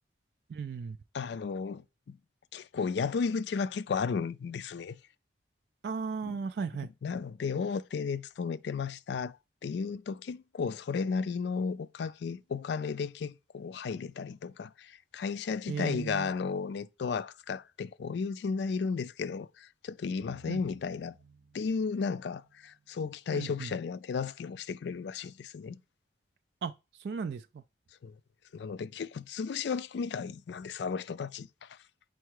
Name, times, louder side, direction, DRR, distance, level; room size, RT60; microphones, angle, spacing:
voice 1, 0.5-1.0 5.8-6.9 15.7-16.3 20.5-20.6 23.3-23.7 26.6-27.6, right 5 dB, 60° right, 0.3 m, -36 dB
voice 2, 1.1-2.2 2.5-5.0 6.2-6.4 7.0-9.4 9.6-21.2 21.5-25.8 28.0-28.1 28.5-31.8, left 5 dB, 65° left, 0.3 m, -34 dB
sound 1, 20.2-23.3, right 3 dB, 80° right, 1.5 m, -59 dB
4.6 x 4.5 x 4.7 m
head